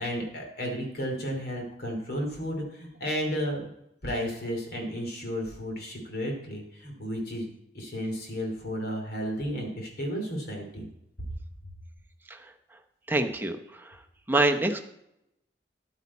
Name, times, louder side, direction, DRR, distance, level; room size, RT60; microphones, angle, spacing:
voice 1, 0.0-3.6 4.0-7.5 7.7-10.9 11.3-11.4, equal, 60° left, 1 dB, 2.8 m, -33 dB
voice 2, 13.1-14.0 14.3-14.8, right 2 dB, 10° right, 6 dB, 0.8 m, -26 dB
11.0 x 8.9 x 4.2 m, 0.79 s
head